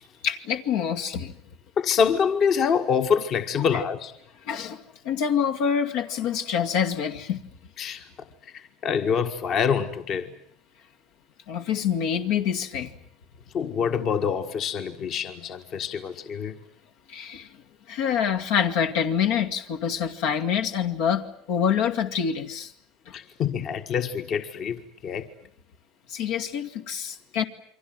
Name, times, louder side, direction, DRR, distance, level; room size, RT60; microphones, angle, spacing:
voice 1, 0.2-1.4 3.6-3.8 4.4-7.4 11.5-12.9 17.1-17.6 17.9-22.7 23.1-23.2 26.1-27.4, left 8 dB, 75° left, 4 dB, 2.3 m, -26 dB
voice 2, 1.8-4.1 7.8-8.1 8.5-10.3 13.5-16.6 23.1-25.3, left 7 dB, 45° left, 7 dB, 1.7 m, -26 dB
29.0 x 24.0 x 7.8 m, 0.64 s
supercardioid pair, 130°, 0 cm